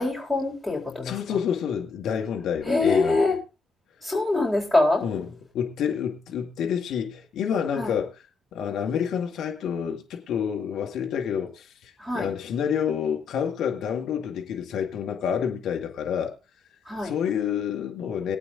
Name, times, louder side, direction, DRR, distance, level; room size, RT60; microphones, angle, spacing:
voice 1, 0.0-1.1 2.7-3.4 4.0-5.0 7.8-7.9 12.0-12.3 16.9-17.1, left 2 dB, 10° left, 4.3 m, -24 dB
voice 2, 1.0-3.3 5.0-5.3 5.5-8.1 8.5-16.3 17.0-18.4, left 8 dB, 65° left, 1.8 m, -28 dB
23.5 x 8.5 x 2.6 m
hypercardioid pair, 45°, 0 cm